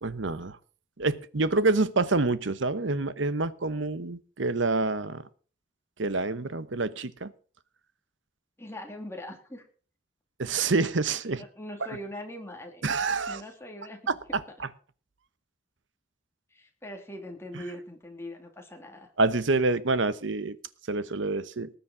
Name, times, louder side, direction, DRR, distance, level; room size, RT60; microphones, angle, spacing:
voice 1, 0.0-0.6 1.0-5.2 6.0-7.3 10.4-11.4 12.8-13.4 14.3-14.7 19.2-20.6 20.9-21.7, right 3 dB, 70° right, 15 dB, 1.0 m, -27 dB
voice 2, 8.6-9.7 11.4-12.9 13.3-14.6 16.5-19.1, left 1 dB, 15° left, 3 dB, 2.5 m, -42 dB
19.0 x 7.2 x 5.9 m, 0.42 s
head